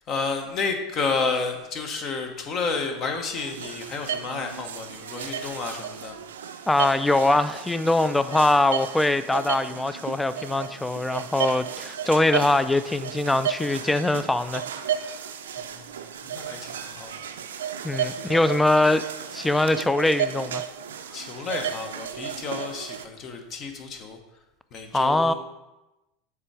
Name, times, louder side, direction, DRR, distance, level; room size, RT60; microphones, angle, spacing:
voice 1, 0.1-6.2 15.6-17.3 21.1-24.2 24.7-25.3, left 4 dB, 40° left, 1.1 m, -31 dB
sound 1, 3.4-23.0, right 8 dB, 80° right, 0.4 m, -34 dB
voice 2, 6.7-14.6 15.0-15.1 17.8-19.0 19.3-20.6 24.9-25.3, left 2 dB, 10° left, 0.3 m, -22 dB
7.3 x 3.5 x 4.8 m
hypercardioid pair, 85°, 0 cm